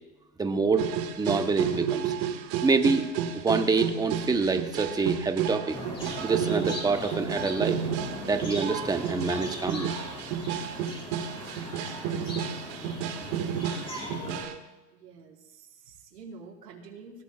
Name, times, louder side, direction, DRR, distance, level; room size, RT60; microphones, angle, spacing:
voice 1, 0.4-0.9 1.2-2.1 2.6-3.0 3.3-5.8 6.2-7.8 8.3-9.9, right 4 dB, 10° right, 7 dB, 1.0 m, -26 dB
sound 1, 0.8-14.5, right 8 dB, 45° right, 1.9 m, -32 dB
sound 2, 5.7-14.5, left 1 dB, 10° left, 4.5 m, -39 dB
voice 2, 14.9-17.2, right 4 dB, 80° right, -1 dB, 4.8 m, -47 dB
26.0 x 16.5 x 2.4 m, 1.1 s
hypercardioid pair, 125°, 49 cm